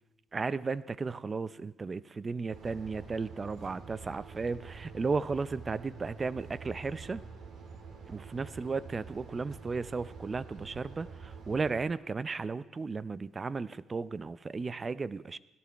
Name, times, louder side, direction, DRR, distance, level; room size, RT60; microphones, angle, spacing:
voice 1, 0.3-7.2 8.1-15.4, right 4 dB, 35° right, 16 dB, 0.6 m, -35 dB
sound 1, 2.5-11.8, right 5 dB, 80° right, 2.6 m, -47 dB
17.0 x 12.0 x 4.6 m, 1.0 s
cardioid pair, 80°, 0 cm